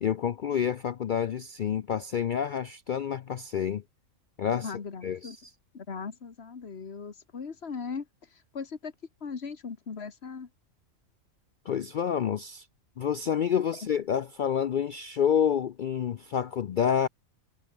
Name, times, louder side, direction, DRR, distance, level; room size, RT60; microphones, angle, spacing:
voice 1, 0.0-3.8 4.4-4.7 5.0-5.4 11.7-12.7 13.0-17.1, left 8 dB, 65° left, 0.5 m, -28 dB
voice 2, 4.6-5.4 5.7-8.1 8.3-8.9 9.2-10.5, left 5 dB, 50° left, 1.8 m, -38 dB
omnidirectional pair, 1.4 m